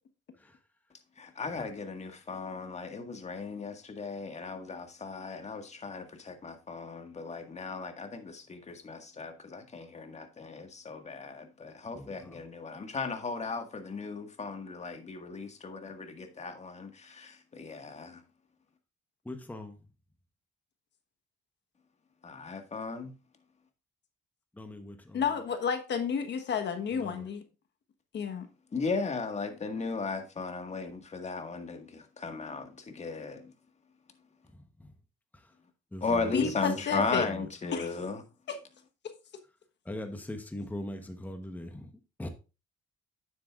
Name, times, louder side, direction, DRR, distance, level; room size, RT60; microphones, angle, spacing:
voice 1, 1.2-18.2 22.2-23.1 28.7-33.5 36.0-38.2, left 4 dB, 35° left, 1.7 m, -36 dB
voice 2, 11.9-12.5 19.2-19.8 24.5-25.3 26.9-27.3 34.5-34.9 35.3-35.5 35.9-38.0 39.8-41.9 42.2-42.3, left 1 dB, 10° left, 1.1 m, -42 dB
voice 3, 25.1-27.4 28.1-28.5 36.3-37.3 37.7-37.9 38.5-38.6, left 6 dB, 60° left, 1.3 m, -31 dB
9.4 x 7.9 x 2.4 m
cardioid pair, 90°, 20 cm